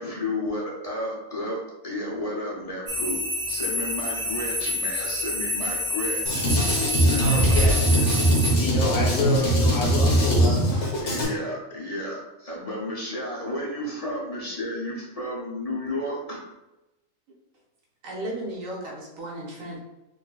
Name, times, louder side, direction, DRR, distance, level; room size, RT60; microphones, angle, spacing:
voice 1, 0.0-1.6 1.8-6.4 6.9-8.3 11.0-16.4, left 1 dB, 35° left, -3 dB, 0.7 m, -32 dB
sound 1, 2.9-8.6, left 1 dB, 35° right, 0.9 m, -28 dB
Drum kit, 6.3-11.3, right 1 dB, 60° left, 1.4 m, -21 dB
voice 2, 7.2-7.8 8.5-10.6, left 4 dB, 75° left, -5 dB, 1.2 m, -28 dB
voice 3, 18.0-19.8, right 1 dB, 70° right, -2 dB, 1.3 m, -34 dB
4.2 x 3.4 x 2.3 m, 0.99 s
omnidirectional pair, 1.4 m